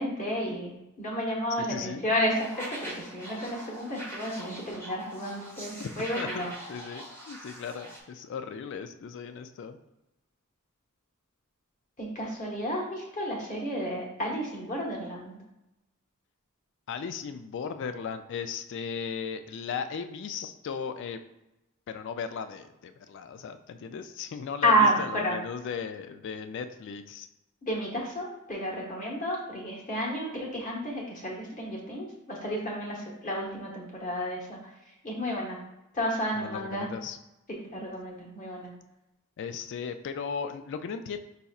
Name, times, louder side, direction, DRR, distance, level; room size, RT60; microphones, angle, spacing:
voice 1, 0.0-2.3 2.7-6.5 12.0-15.4 24.6-25.4 27.6-34.6 35.0-35.6 35.9-36.9 37.7-38.7, equal, 35° left, -3 dB, 1.2 m, -31 dB
voice 2, 1.6-2.0 5.8-5.9 6.2-9.8 16.9-21.2 21.9-27.3 36.3-37.2 39.4-41.2, left 6 dB, 55° left, 9 dB, 0.3 m, -37 dB
sound 1, 2.3-8.0, right 1 dB, 10° left, 0.9 m, -42 dB
5.3 x 4.1 x 2.4 m, 0.93 s
head